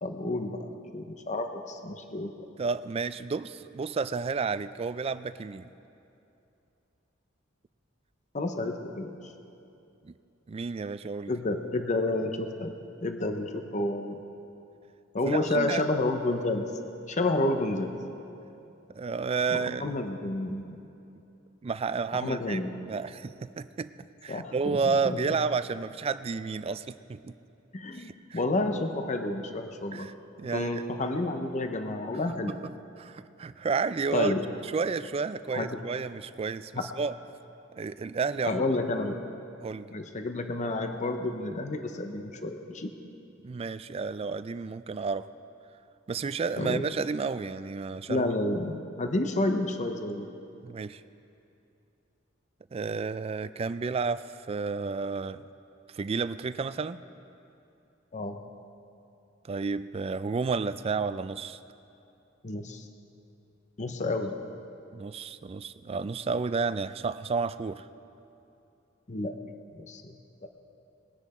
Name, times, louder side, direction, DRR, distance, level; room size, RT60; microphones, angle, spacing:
voice 1, 0.0-2.5 8.3-9.1 11.3-12.7 13.0-14.2 15.1-16.7 17.1-17.9 19.5-20.8 22.1-22.7 24.3-24.8 25.0-25.3 27.7-30.1 30.5-32.5 34.1-34.5 35.5-35.8 36.7-36.9 38.5-39.2 39.9-42.9 46.6-46.8 48.1-50.3 58.1-58.4 62.4-62.9 63.8-64.4 69.1-69.4 69.8-70.1 70.4-70.5, left 2 dB, 35° left, 6 dB, 0.7 m, -30 dB
voice 2, 2.6-5.7 10.0-10.1 10.5-11.3 15.2-15.8 18.9-19.9 21.6-22.6 22.9-23.9 24.2-27.3 27.9-28.4 29.9-30.1 30.4-30.8 32.5-32.6 33.0-34.3 34.7-37.1 37.7-38.6 39.6-39.9 43.4-45.3 46.1-48.3 50.6-51.0 52.7-55.4 55.9-57.0 59.4-61.6 64.0-64.1 64.9-67.8, right 4 dB, 30° right, 14 dB, 0.3 m, -31 dB
20.5 x 10.0 x 4.2 m, 2.7 s
head